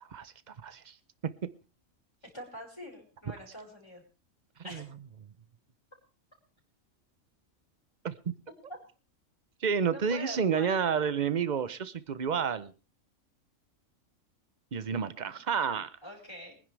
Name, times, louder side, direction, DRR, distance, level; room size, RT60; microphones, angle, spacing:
voice 1, 0.0-0.9 4.7-4.8 8.0-8.1 9.6-12.7 14.7-15.9, right 6 dB, 40° right, 14 dB, 0.8 m, -30 dB
voice 2, 2.3-4.0 4.6-4.8 9.9-11.6 16.0-16.6, left 1 dB, 20° left, 0 dB, 5.1 m, -45 dB
24.0 x 10.5 x 3.4 m, 0.34 s
omnidirectional pair, 1.4 m